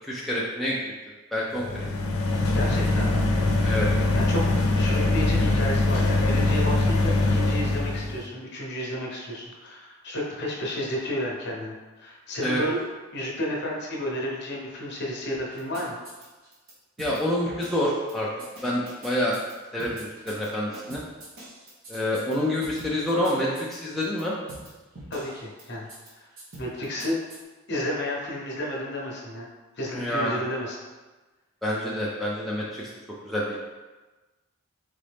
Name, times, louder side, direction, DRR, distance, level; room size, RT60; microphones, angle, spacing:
voice 1, 0.0-0.8 1.3-1.9 3.6-3.9 12.4-12.6 17.0-18.3 18.6-19.4 19.7-21.0 21.9-24.3 29.9-30.4 31.6-32.9 33.2-33.6, left 1 dB, ahead, -6 dB, 0.4 m, -27 dB
sound 1, 1.6-8.2, left 2 dB, 85° left, 0.6 m, -23 dB
voice 2, 2.5-3.2 4.2-12.8 13.1-16.0 25.1-25.9 26.6-27.2 27.7-29.5 29.8-30.8, left 1 dB, 50° left, -2 dB, 0.9 m, -32 dB
sound 2, 15.3-16.7 17.0-17.2 17.4-18.1 18.4-19.5 19.8-20.5 20.7-22.3 22.6-24.2 24.5-24.7 24.9-25.6 25.9-26.1 26.4-27.4, right 1 dB, 65° right, 1.2 m, -44 dB
4.0 x 3.7 x 3.4 m, 1.2 s
head